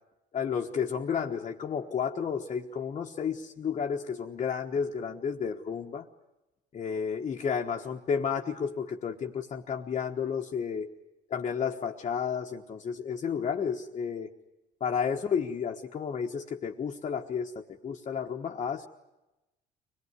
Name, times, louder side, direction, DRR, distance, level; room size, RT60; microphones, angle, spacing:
voice 1, 0.3-6.1 6.7-10.9 11.3-14.3 14.8-18.9, left 6 dB, 40° left, 0 dB, 1.3 m, -32 dB
24.5 x 18.5 x 9.7 m, 0.99 s
cardioid pair, 110°, 17 cm